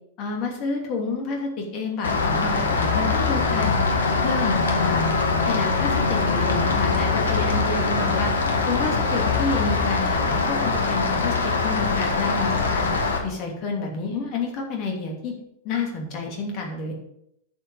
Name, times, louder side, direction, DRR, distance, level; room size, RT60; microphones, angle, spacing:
voice 1, 0.2-3.8 4.2-5.1 5.4-8.3 8.7-11.3 11.6-12.9 13.2-15.3 15.6-16.9, left 4 dB, 40° left, 0 dB, 2.8 m, -29 dB
Rain, 2.0-13.2, left 4 dB, 70° left, 1.5 m, -22 dB
10.0 x 6.9 x 5.1 m, 0.77 s
figure-of-eight pair, 90°, 0 cm